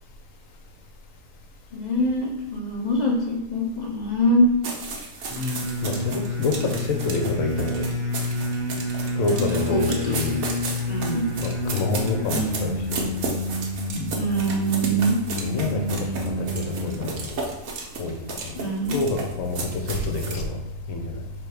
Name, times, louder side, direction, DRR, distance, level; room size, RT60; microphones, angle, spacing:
voice 1, 1.7-4.5 9.4-10.2 10.8-11.2 14.2-15.2 18.5-19.0, equal, 55° left, -2 dB, 0.5 m, -24 dB
sound 1, 4.6-20.4, right 3 dB, 80° right, 1.2 m, -34 dB
sound 2, 5.3-17.2, left 1 dB, ahead, 1.5 m, -29 dB
voice 2, 5.8-7.9 9.2-10.5 11.4-13.1 15.4-15.8 16.2-17.4 18.0-18.1 18.4-18.5 18.9-20.6 20.9-21.2, left 3 dB, 70° left, 3 dB, 1.1 m, -27 dB
3.5 x 3.0 x 4.7 m, 0.93 s
omnidirectional pair, 1.5 m